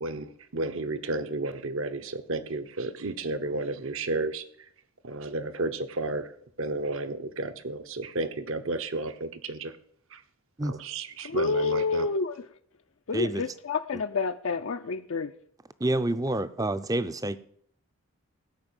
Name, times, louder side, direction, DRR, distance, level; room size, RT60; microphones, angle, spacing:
voice 1, 0.0-4.4 5.0-6.3 6.6-9.7 10.1-10.2 10.6-12.1, right 2 dB, 65° right, 11 dB, 1.1 m, -32 dB
voice 2, 11.2-12.4 13.1-15.3, left 4 dB, 65° left, 6 dB, 0.5 m, -28 dB
voice 3, 13.1-13.5 13.9-14.0 15.8-17.4, right 1 dB, 15° right, 13 dB, 0.5 m, -28 dB
16.0 x 5.7 x 9.0 m, 0.66 s
head